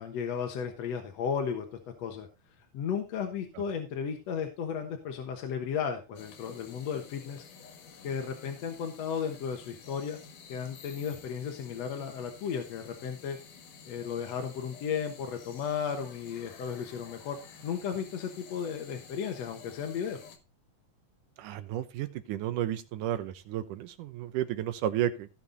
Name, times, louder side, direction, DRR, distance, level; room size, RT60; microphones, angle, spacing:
voice 1, 0.0-2.3 2.7-7.5 8.0-10.2 10.5-13.4 13.9-17.4 17.6-20.2, left 7 dB, 60° left, 4 dB, 2.2 m, -34 dB
sound 1, 6.2-20.4, left 6 dB, 90° left, 3.3 m, -51 dB
voice 2, 21.4-25.3, right 11 dB, 85° right, 11 dB, 2.5 m, -32 dB
16.5 x 5.9 x 3.9 m, 0.28 s
omnidirectional pair, 3.6 m